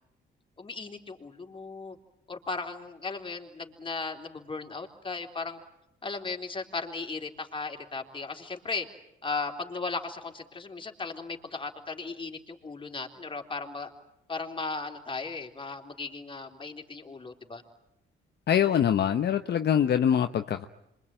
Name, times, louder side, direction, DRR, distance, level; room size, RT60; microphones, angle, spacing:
voice 1, 0.6-2.0 2.3-5.6 6.0-8.9 9.2-13.9 14.3-17.6, left 4 dB, 25° left, 3 dB, 3.6 m, -36 dB
voice 2, 18.5-20.7, left 9 dB, 55° left, 8 dB, 1.0 m, -24 dB
27.0 x 24.0 x 9.0 m, 0.83 s
cardioid pair, 90°, 20 cm